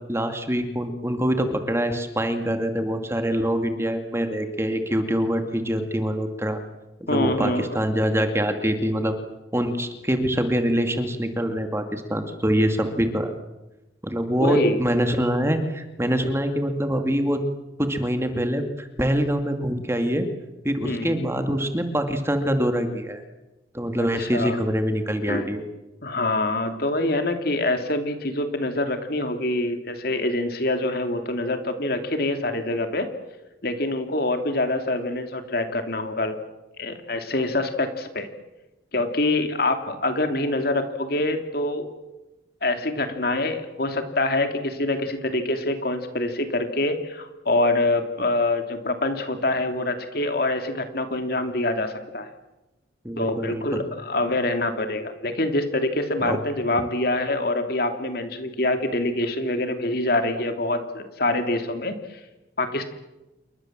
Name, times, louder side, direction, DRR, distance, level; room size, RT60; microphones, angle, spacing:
voice 1, 0.0-6.6 7.1-9.1 9.5-13.3 14.0-17.4 17.8-20.3 20.6-23.2 23.7-25.6 53.0-53.8 56.2-56.4, equal, 15° right, 6 dB, 2.3 m, -24 dB
voice 2, 7.1-7.8 14.4-14.8 20.8-21.2 24.2-24.6 25.3-25.5 26.0-33.1 33.6-36.4 36.8-38.3 38.9-41.9 42.6-52.3 53.2-62.2 62.6-62.9, left 2 dB, 55° left, 7 dB, 2.9 m, -25 dB
28.5 x 23.0 x 7.6 m, 0.99 s
head